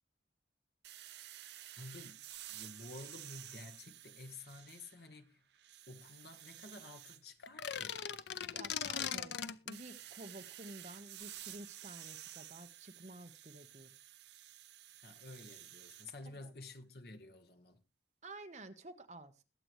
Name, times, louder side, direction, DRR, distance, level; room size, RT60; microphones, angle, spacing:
sound 1, 0.8-5.1 5.5-7.2 9.7-16.1, right 13 dB, 65° right, 0.6 m, -52 dB
voice 1, 1.8-2.2 2.5-5.4 5.9-8.1 15.0-17.8, left 2 dB, 55° left, 1.5 m, -52 dB
sound 2, 7.4-9.8, left 8 dB, 75° left, 0.7 m, -39 dB
voice 2, 8.5-14.0 16.4-16.5 18.2-19.3, right 1 dB, 40° right, 1.1 m, -52 dB
21.5 x 7.9 x 3.2 m
head